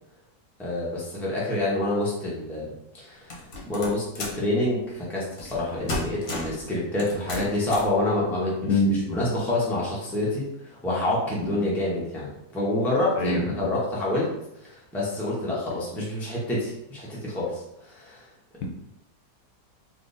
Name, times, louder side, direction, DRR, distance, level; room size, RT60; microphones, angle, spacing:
voice 1, 0.6-2.7 2.9-14.3 14.6-18.3, left 1 dB, ahead, -6 dB, 0.6 m, -27 dB
sound 1, 3.3-4.5 5.4-5.6 5.9-6.6 7.0-8.0, left 2 dB, 55° left, 1.0 m, -33 dB
voice 2, 8.7-9.2 13.2-13.7, left 1 dB, 80° left, 2 dB, 1.1 m, -24 dB
3.6 x 2.8 x 2.6 m, 0.83 s
omnidirectional pair, 1.6 m